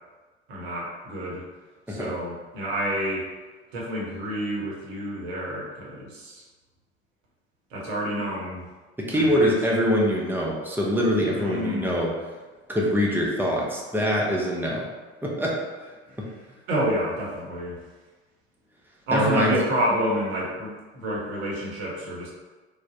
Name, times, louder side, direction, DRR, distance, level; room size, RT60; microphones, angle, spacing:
voice 1, 0.5-1.4 1.9-3.3 3.7-6.4 7.7-8.7 9.1-9.5 11.3-12.0 16.1-16.2 16.7-17.8 19.1-22.3, equal, 60° right, -4 dB, 1.0 m, -28 dB
voice 2, 9.1-12.1 12.7-14.9 15.2-15.6 19.1-19.6, equal, 5° right, -3 dB, 0.5 m, -24 dB
3.3 x 2.0 x 2.6 m, 1.3 s
figure-of-eight pair, 65°, 34 cm